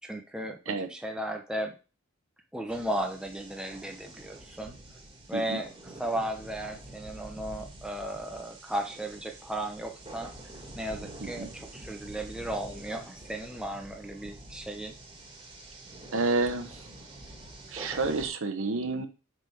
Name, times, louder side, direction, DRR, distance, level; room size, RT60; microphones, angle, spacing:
voice 1, 0.0-0.6 0.9-1.8 2.5-4.8 5.3-5.7 6.0-10.3 10.8-15.0, right 1 dB, 5° right, 3 dB, 0.7 m, -35 dB
sound 1, 2.7-18.3, right 1 dB, 20° right, 1.5 m, -47 dB
voice 2, 16.1-16.9 17.7-19.1, right 3 dB, 60° right, 7 dB, 0.8 m, -30 dB
5.3 x 5.1 x 4.6 m, 0.33 s
head